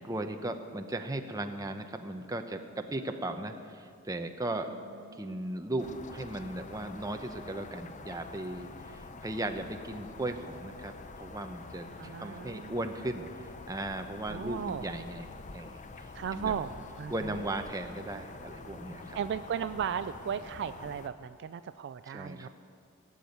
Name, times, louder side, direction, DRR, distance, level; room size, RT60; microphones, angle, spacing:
voice 1, 0.0-4.7 5.2-16.5 17.1-19.2 22.1-22.5, right 1 dB, 15° right, 5 dB, 0.8 m, -37 dB
sound 1, 5.8-21.1, left 3 dB, 35° left, 0.6 m, -47 dB
voice 2, 11.9-12.9 14.3-14.9 16.1-17.5 19.1-22.5, right 7 dB, 55° right, 12 dB, 0.3 m, -36 dB
18.0 x 7.1 x 9.3 m, 2.4 s
head